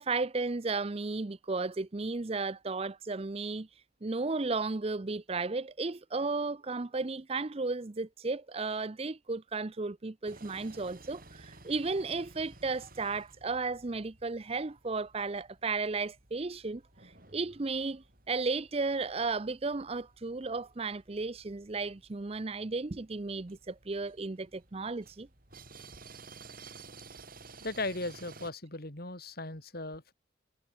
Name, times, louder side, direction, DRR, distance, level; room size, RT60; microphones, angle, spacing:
voice 1, 0.0-3.7 4.0-16.8 17.3-25.3, right 3 dB, 30° right, 0.6 m, -34 dB
sound 1, 10.2-28.5, right 3 dB, 45° right, 7.0 m, -55 dB
voice 2, 27.6-30.1, left 2 dB, 50° left, 3.3 m, -37 dB
head